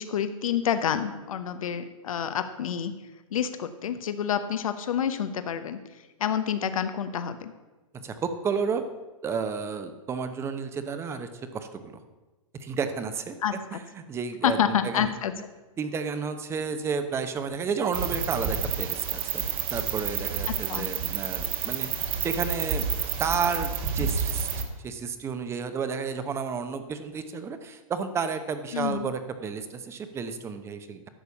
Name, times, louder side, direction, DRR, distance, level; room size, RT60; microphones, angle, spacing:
voice 1, 0.0-2.9 3.3-5.8 6.2-7.5 13.4-13.5 14.4-15.3 20.7-20.9 28.7-29.0, left 9 dB, 75° left, 10 dB, 0.9 m, -28 dB
voice 2, 7.9-8.9 9.2-12.0 12.6-15.1 15.8-19.4 19.7-22.9 23.2-31.1, right 5 dB, 15° right, 9 dB, 0.8 m, -32 dB
sound 1, 17.9-24.6, right 7 dB, 30° right, 1.2 m, -29 dB
11.0 x 6.8 x 7.0 m, 1.2 s
hypercardioid pair, 145°, 18 cm